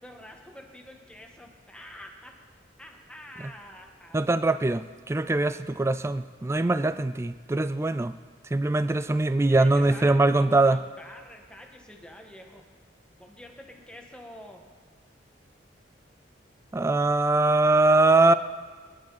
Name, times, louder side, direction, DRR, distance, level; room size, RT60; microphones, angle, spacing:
voice 1, 0.0-2.3 2.8-4.2 9.5-12.6 13.2-14.6, left 1 dB, 5° left, 1 dB, 1.5 m, -46 dB
voice 2, 4.1-8.1 8.5-10.8 16.7-18.3, right 2 dB, 15° right, 13 dB, 0.3 m, -22 dB
22.5 x 11.0 x 4.1 m, 1.5 s
head